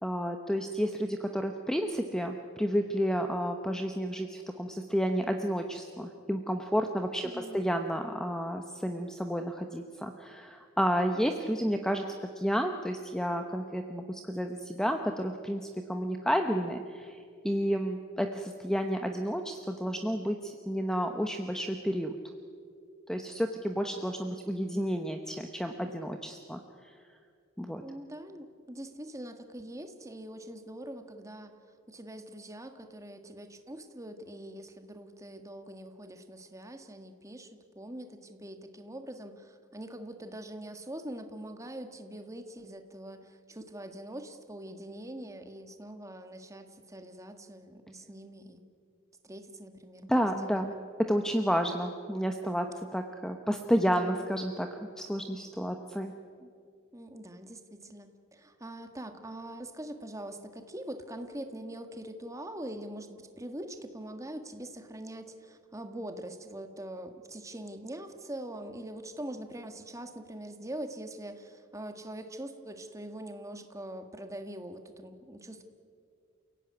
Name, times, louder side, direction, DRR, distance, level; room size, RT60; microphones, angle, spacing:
voice 1, 0.0-12.1 12.4-22.2 23.1-26.9 27.6-27.8 50.1-50.7 51.1-52.7 52.9-56.1, equal, 5° left, 5 dB, 0.9 m, -31 dB
voice 2, 7.2-7.6 27.8-31.5 31.9-48.7 49.2-50.8 53.8-54.3 56.4-56.5 56.9-75.6, right 1 dB, 15° right, 6 dB, 1.7 m, -43 dB
29.0 x 16.5 x 9.6 m, 2.4 s
head